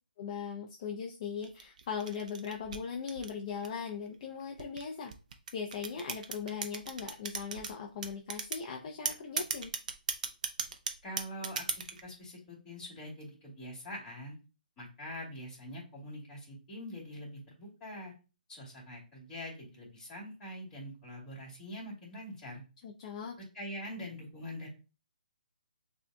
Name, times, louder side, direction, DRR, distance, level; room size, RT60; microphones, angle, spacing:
voice 1, 0.2-5.1 5.5-9.7 22.8-23.4, left 6 dB, 35° left, 1 dB, 0.5 m, -39 dB
sound 1, 1.4-3.9 4.6-7.7 8.0-8.6 9.1-12.0, right 6 dB, 50° right, 0.6 m, -36 dB
voice 2, 11.0-14.4 14.8-18.1 18.5-22.6 23.5-24.7, equal, 15° left, -6 dB, 2.3 m, -44 dB
6.7 x 2.7 x 2.2 m, 0.33 s
hypercardioid pair, 155°, 5 cm